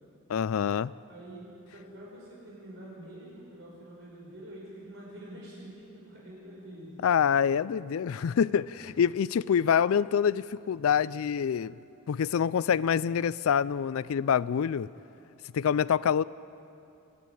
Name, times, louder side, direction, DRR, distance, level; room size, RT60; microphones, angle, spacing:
voice 1, 0.3-0.9 7.0-11.8 12.1-14.9 15.5-16.2, left 7 dB, 85° left, 19 dB, 0.4 m, -26 dB
voice 2, 1.1-7.0 8.8-8.9, right 1 dB, 65° right, -5 dB, 5.4 m, -46 dB
27.5 x 10.0 x 9.2 m, 2.7 s
head